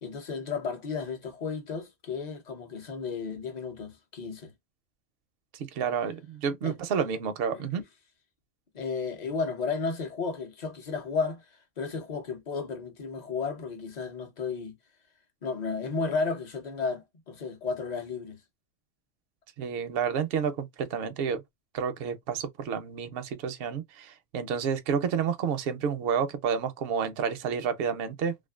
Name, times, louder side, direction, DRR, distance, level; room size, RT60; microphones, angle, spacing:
voice 1, 0.0-4.5 6.6-7.1 7.5-7.6 8.7-14.7 15.4-18.4, left 4 dB, 40° left, 0.7 m, -33 dB
voice 2, 5.5-7.8 19.6-21.4 21.7-28.3, right 7 dB, 65° right, 0.7 m, -30 dB
2.5 x 2.4 x 2.3 m
omnidirectional pair, 1.3 m